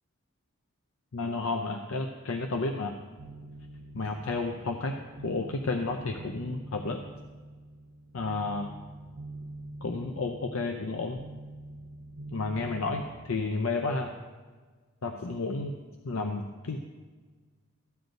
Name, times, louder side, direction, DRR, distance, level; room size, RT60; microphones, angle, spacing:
voice 1, 1.1-2.9 3.9-4.9 5.2-7.0 8.1-8.7 9.8-11.2 12.3-14.1 15.0-15.7 16.0-16.8, left 3 dB, 75° left, 4 dB, 0.6 m, -31 dB
sound 1, 3.2-13.2, right 2 dB, 60° right, 0.5 m, -45 dB
14.5 x 9.1 x 2.6 m, 1.4 s
head